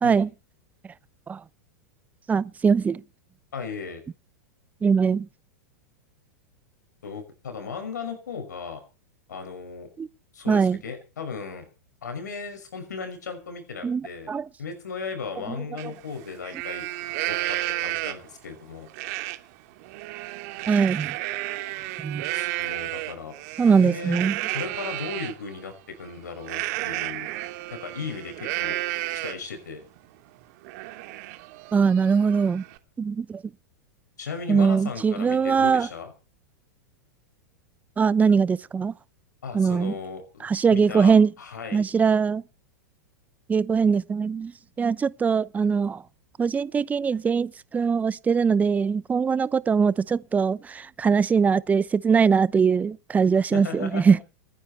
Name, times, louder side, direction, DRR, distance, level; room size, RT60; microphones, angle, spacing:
voice 1, 2.3-3.0 4.8-5.3 10.0-10.1 10.5-10.8 13.8-14.5 20.7-21.1 22.0-22.2 23.6-24.4 31.7-32.6 33.0-33.4 34.5-35.9 38.0-38.9 39.5-39.9 40.4-41.3 41.7-42.4 43.5-44.5 44.8-46.0 46.4-54.2, right 6 dB, 15° right, 0.7 m, -21 dB
voice 2, 3.5-4.0 7.0-8.8 9.3-9.9 10.3-11.6 12.0-14.3 14.6-16.8 17.3-18.9 22.3-23.4 23.6-24.2 24.5-27.3 27.7-28.8 29.2-29.8 34.2-36.1 39.4-40.4 40.7-41.9 53.5-54.0, left 5 dB, 85° left, 5.9 m, -36 dB
Livestock farm animals working animals, 15.8-15.9 16.3-18.4 18.9-19.4 19.8-25.3 26.4-29.5 30.0-30.1 30.4-32.8, right 18 dB, 55° right, 2.7 m, -32 dB
29.0 x 10.5 x 4.4 m
hypercardioid pair, 110°, 9 cm